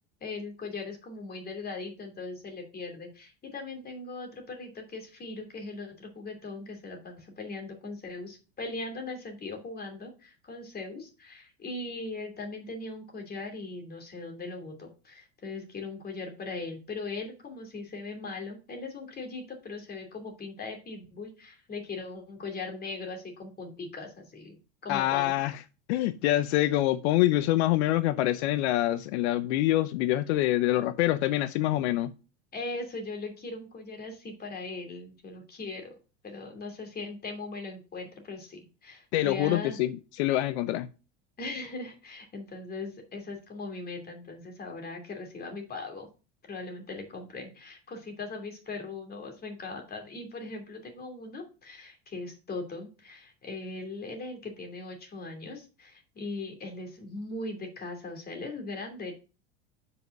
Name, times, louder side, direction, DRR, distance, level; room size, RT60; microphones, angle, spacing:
voice 1, 0.2-25.5 32.5-35.9 36.2-39.8 41.4-46.1 46.5-59.1, left 3 dB, 30° left, 2.8 m, -39 dB
voice 2, 24.9-25.5 25.9-32.1 39.1-40.9, left 15 dB, 75° left, 0.6 m, -25 dB
5.5 x 5.2 x 6.5 m
supercardioid pair, 105°, 33 cm